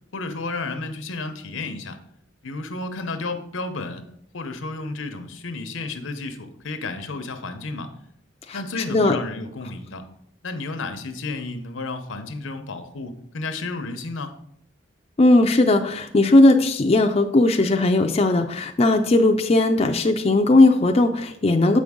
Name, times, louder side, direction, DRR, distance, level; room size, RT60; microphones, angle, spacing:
voice 1, 0.1-2.0 2.4-4.0 4.3-7.9 8.5-10.0 10.4-14.3, left 3 dB, 90° left, 7 dB, 0.8 m, -32 dB
voice 2, 8.5-9.2 15.2-21.8, left 2 dB, 30° left, 4 dB, 0.4 m, -18 dB
7.5 x 5.2 x 3.6 m, 0.71 s
head